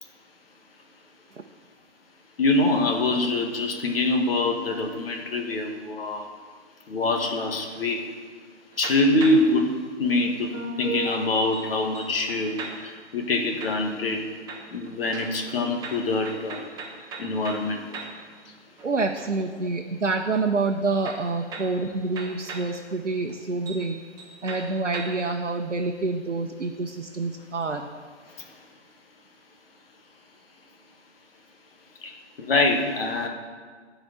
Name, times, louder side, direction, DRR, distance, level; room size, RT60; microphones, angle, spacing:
voice 1, 2.4-6.3 6.9-8.1 8.8-14.3 14.7-16.6 17.2-17.9 28.3-28.6 32.0-33.3, left 2 dB, 55° left, 3 dB, 1.9 m, -25 dB
sound 1, 8.7-9.6 10.5-13.1 13.6-14.2 14.5-18.3 18.7-19.6 21.0-22.8 23.3-23.4 23.7-23.9 24.2-25.3, right 3 dB, 10° right, 1.0 m, -38 dB
voice 2, 18.8-24.0 24.4-27.9, right 3 dB, 90° right, 2 dB, 1.0 m, -27 dB
13.0 x 5.2 x 8.1 m, 1.6 s
figure-of-eight pair, 130°, 35 cm